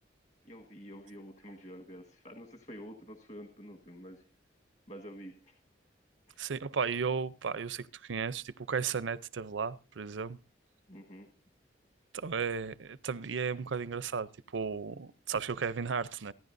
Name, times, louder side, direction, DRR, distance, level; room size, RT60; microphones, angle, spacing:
voice 1, 0.4-4.2 4.9-5.6 6.3-6.4 10.9-11.3, equal, 40° left, 1.5 m, -48 dB
voice 2, 6.4-10.4 12.1-16.3, right 5 dB, 80° right, 0.6 m, -34 dB
27.5 x 10.5 x 2.6 m
head